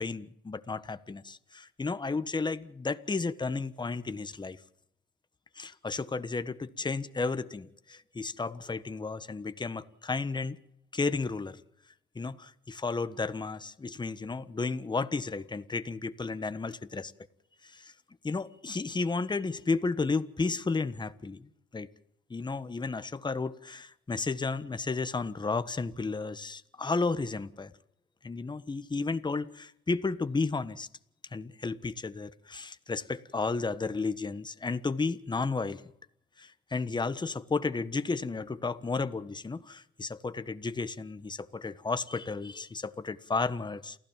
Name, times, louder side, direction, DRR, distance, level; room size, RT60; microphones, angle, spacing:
voice 1, 0.0-4.6 5.6-10.6 10.9-11.6 12.1-17.1 17.7-17.9 18.2-21.5 21.7-21.9 22.3-27.7 28.2-30.9 31.3-35.8 36.4-44.0, left 4 dB, 20° left, 1.3 m, -33 dB
28.5 x 15.5 x 7.5 m
cardioid pair, 90°, 20 cm